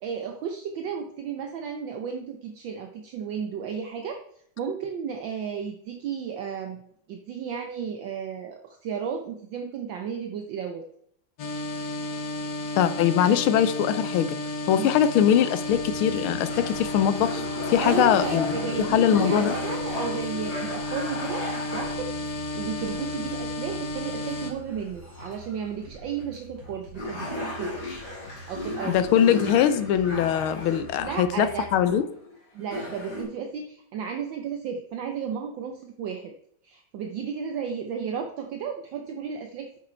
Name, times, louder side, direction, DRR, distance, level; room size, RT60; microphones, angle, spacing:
voice 1, 0.0-4.2 4.6-10.8 14.7-14.9 17.8-27.8 28.5-29.1 31.0-31.7 32.5-36.3 36.6-39.8, right 7 dB, 70° right, 5 dB, 1.4 m, -34 dB
sound 1, 11.4-24.5, left 1 dB, 55° left, 1.5 m, -32 dB
voice 2, 12.8-14.4 14.7-18.5 18.8-19.6 28.9-32.1, left 9 dB, 80° left, 12 dB, 1.5 m, -22 dB
sound 2, 15.1-16.0 16.4-21.9 22.8-23.4 23.7-23.8 24.4-25.5 26.2-26.3 26.6-26.7 26.9-31.3 32.2-32.3 32.6-33.2, left 2 dB, 30° left, 3.8 m, -35 dB
sound 3, 15.6-31.9, right 2 dB, 50° right, 3.3 m, -47 dB
8.7 x 6.4 x 4.4 m, 0.69 s
omnidirectional pair, 2.4 m